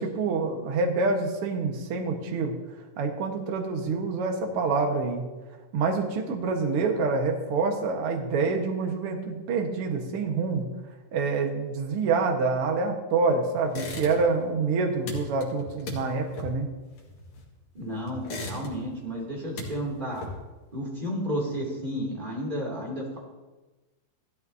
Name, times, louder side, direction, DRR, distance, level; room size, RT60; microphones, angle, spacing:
voice 1, 0.0-2.6 3.0-5.3 5.7-10.7 11.1-16.7, right 4 dB, 55° right, 3 dB, 1.8 m, -27 dB
sound 1, 13.7-14.5 14.7-17.6 18.1-19.0 19.3-20.6, left 2 dB, 55° left, 2.8 m, -38 dB
voice 2, 17.7-20.2 20.7-23.2, equal, 15° right, -3 dB, 2.4 m, -32 dB
15.5 x 13.0 x 2.8 m, 1.2 s
omnidirectional pair, 4.0 m